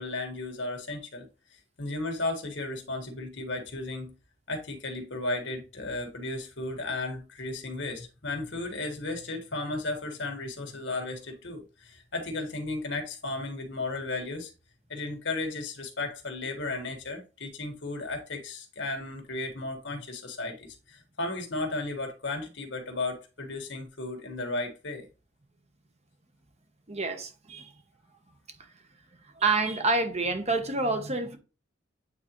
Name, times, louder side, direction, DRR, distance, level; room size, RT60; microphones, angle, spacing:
voice 1, 0.0-4.1 4.5-14.5 14.9-25.1, left 2 dB, 70° left, 1.7 m, -34 dB
voice 2, 26.9-27.7 29.4-31.4, right 3 dB, 35° right, 0.9 m, -27 dB
8.6 x 3.9 x 3.1 m
head